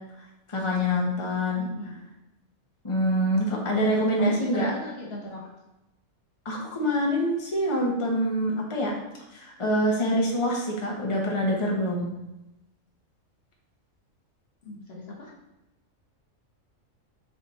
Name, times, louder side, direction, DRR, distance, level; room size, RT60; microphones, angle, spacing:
voice 1, 0.5-1.7 2.8-4.7 6.4-8.9 9.3-12.1, equal, 25° left, -2 dB, 1.2 m, -25 dB
voice 2, 1.6-2.0 4.2-5.4 14.6-15.3, left 1 dB, 50° left, -3 dB, 1.3 m, -38 dB
7.0 x 3.6 x 4.2 m, 0.94 s
omnidirectional pair, 1.3 m